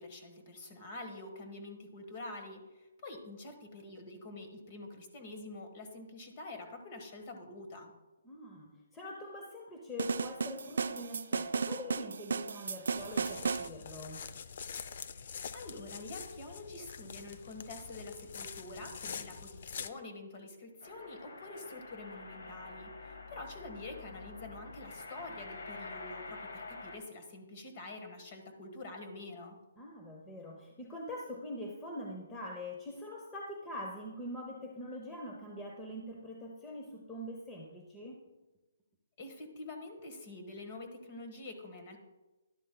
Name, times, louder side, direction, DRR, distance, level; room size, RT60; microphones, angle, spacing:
voice 1, 0.0-7.9 15.5-29.6 39.2-42.0, left 2 dB, 30° left, 5 dB, 1.3 m, -46 dB
voice 2, 8.2-14.2 29.8-38.2, left 1 dB, 10° left, -1 dB, 0.7 m, -44 dB
sound 1, 10.0-13.7, right 5 dB, 70° right, 0.4 m, -34 dB
sound 2, 13.0-19.9, left 6 dB, 45° left, 0.4 m, -45 dB
sound 3, 20.8-27.0, left 3 dB, 75° left, 1.5 m, -47 dB
11.5 x 11.5 x 2.2 m, 1.1 s
hypercardioid pair, 170°, 0 cm